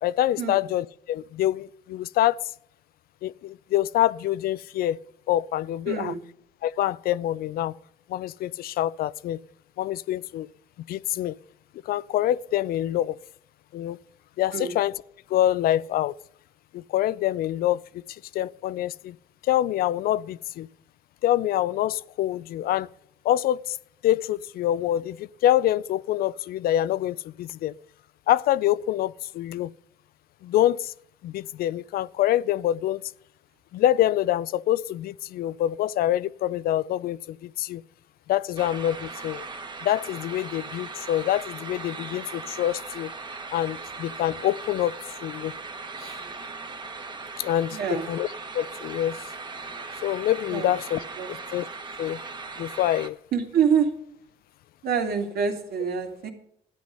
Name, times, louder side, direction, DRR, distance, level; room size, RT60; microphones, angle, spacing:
voice 1, 0.0-2.5 3.2-5.0 5.3-6.1 6.6-7.7 8.1-9.4 9.8-10.5 10.9-11.4 11.9-13.2 13.7-14.0 14.4-14.9 15.3-16.2 16.7-19.2 19.4-20.7 21.2-22.9 23.2-23.8 24.0-27.7 28.3-29.7 30.4-30.9 31.2-33.0 33.7-37.8 38.3-39.4 39.8-43.1 43.5-44.9 45.2-45.5 46.0-46.1 47.4-47.8 48.1-48.3 48.5-49.2 50.0-51.0 51.3-51.7 52.0-52.2 52.6-53.2, left 13 dB, 65° left, 0.4 m, -25 dB
voice 2, 5.9-6.3 14.5-14.7 47.7-48.1 50.5-50.7 51.2-51.3 53.3-53.9 54.8-56.3, right 7 dB, 65° right, 2.5 m, -26 dB
sound 1, 38.6-53.1, right 3 dB, 25° right, 1.4 m, -38 dB
12.5 x 9.9 x 5.4 m
cardioid pair, 110°, 17 cm